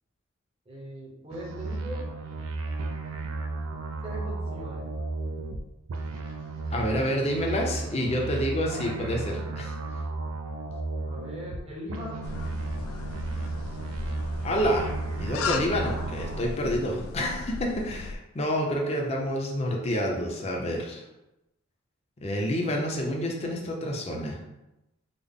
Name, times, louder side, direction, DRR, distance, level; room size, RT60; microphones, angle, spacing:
voice 1, 0.7-2.1 4.0-4.9 6.7-7.1 8.0-10.0 11.0-12.3, equal, 30° right, -4 dB, 0.8 m, -41 dB
sound 1, 1.3-5.6 5.9-11.6 11.9-16.5, right 3 dB, 90° right, 0.4 m, -34 dB
voice 2, 6.7-9.2 9.6-9.7 14.4-14.9 15.2-21.0 22.2-24.4, equal, 30° left, 0 dB, 0.5 m, -28 dB
sound 2, 12.2-18.2, left 3 dB, 85° left, 0.3 m, -36 dB
3.7 x 2.0 x 3.5 m, 0.94 s
head